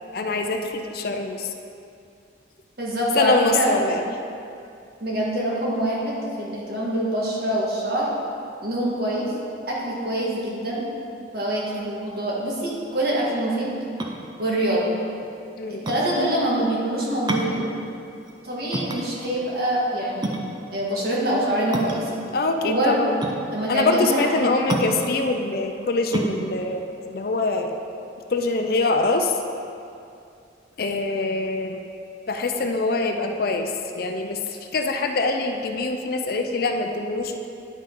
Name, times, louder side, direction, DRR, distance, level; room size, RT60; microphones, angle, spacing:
voice 1, 0.1-1.5 3.2-4.0 15.6-15.8 22.3-23.2 23.7-27.7 28.3-29.4 30.8-31.8 32.3-37.5, left 3 dB, 50° left, 5 dB, 0.5 m, -24 dB
voice 2, 2.8-3.7 5.0-8.1 8.6-9.3 9.7-10.8 11.3-13.8 14.4-14.9 15.7-17.7 18.4-20.3 20.7-22.2 22.6-23.0 23.5-24.5, right 1 dB, 55° right, -5 dB, 1.6 m, -25 dB
sound 1, 14.0-28.2, right 1 dB, 25° right, 0.5 m, -31 dB
10.0 x 5.4 x 3.8 m, 2.5 s
head